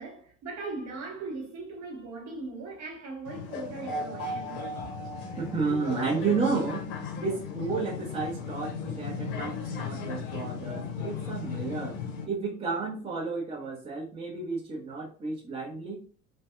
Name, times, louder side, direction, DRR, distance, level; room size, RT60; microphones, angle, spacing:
voice 1, 0.0-4.7, right 3 dB, 40° right, 1.0 m, -39 dB
sound 1, 3.3-12.2, left 4 dB, 50° left, 0.7 m, -36 dB
voice 2, 5.4-12.0 12.3-16.0, right 4 dB, 15° right, 0.7 m, -32 dB
2.5 x 2.2 x 2.4 m
figure-of-eight pair, 65°, 40 cm